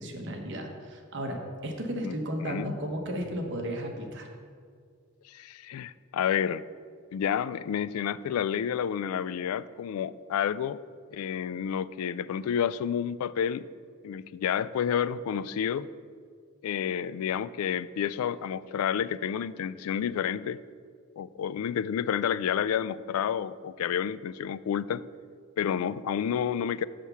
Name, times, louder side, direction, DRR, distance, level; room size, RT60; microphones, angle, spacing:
voice 1, 0.0-4.3, equal, 55° right, 3 dB, 1.1 m, -34 dB
voice 2, 2.0-2.7 5.3-6.6 7.1-10.8 11.1-13.7 14.0-15.9 16.6-20.6 21.2-25.0 25.6-26.8, left 8 dB, 85° left, 17 dB, 0.3 m, -30 dB
6.5 x 5.8 x 6.8 m, 2.1 s
head